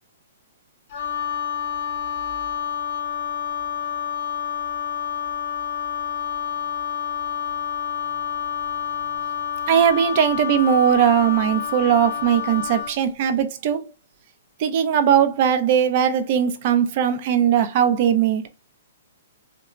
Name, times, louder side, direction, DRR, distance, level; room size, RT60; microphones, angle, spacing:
Wind instrument woodwind instrument, 0.9-13.0, left 8 dB, 50° left, 0.9 m, -28 dB
voice 1, 9.7-13.9 14.6-18.5, right 9 dB, 45° right, 0.5 m, -19 dB
2.8 x 2.2 x 2.3 m
hypercardioid pair, 135°, 0 cm